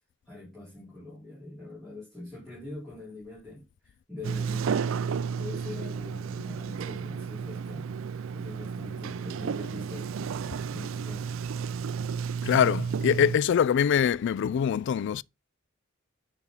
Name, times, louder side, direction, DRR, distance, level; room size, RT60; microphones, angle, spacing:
voice 1, 0.3-4.8 5.4-7.9 8.3-10.3 10.7-11.3, left 2 dB, ahead, 4.3 m, -43 dB
Sliding door, 4.2-13.4, right 6 dB, 75° right, 0.4 m, -32 dB
voice 2, 12.4-15.2, left 8 dB, 60° left, 0.3 m, -24 dB
9.7 x 4.4 x 4.0 m
head